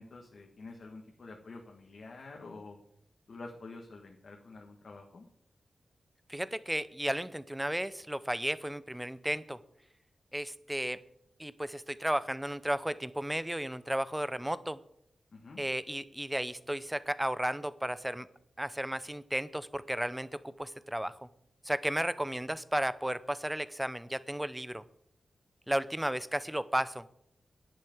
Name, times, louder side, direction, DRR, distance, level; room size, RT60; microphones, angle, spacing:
voice 1, 0.0-2.8 3.3-5.3 15.3-15.6, left 3 dB, 60° left, 1 dB, 1.6 m, -48 dB
voice 2, 6.3-9.6 10.3-11.0 11.4-14.8 15.6-18.3 18.6-21.2 21.6-24.8 25.7-27.0, right 1 dB, 5° right, 15 dB, 0.6 m, -34 dB
10.5 x 8.7 x 8.0 m, 0.74 s
wide cardioid pair, 125°, 0 cm